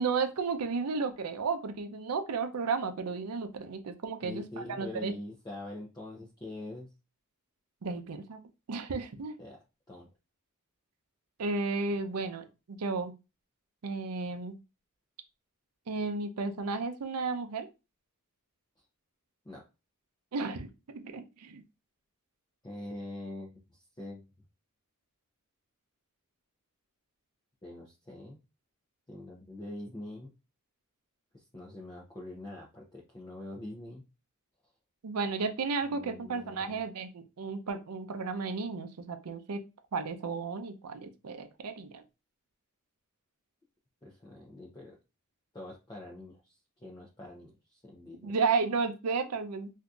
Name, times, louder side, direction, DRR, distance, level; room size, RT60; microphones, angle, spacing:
voice 1, 0.0-5.1 7.8-8.4 8.7-9.4 11.4-13.1 13.8-14.6 15.9-17.7 20.3-21.6 35.0-39.6 39.9-42.0 48.2-49.7, right 4 dB, 80° right, 8 dB, 0.5 m, -33 dB
voice 2, 4.2-6.9 9.4-9.6 9.9-10.1 19.4-19.6 22.6-24.2 27.6-28.4 29.1-30.3 31.3-34.0 35.9-36.8 44.0-45.0 45.5-48.3, left 1 dB, 20° left, -3 dB, 0.5 m, -44 dB
3.7 x 2.7 x 2.3 m, 0.28 s
head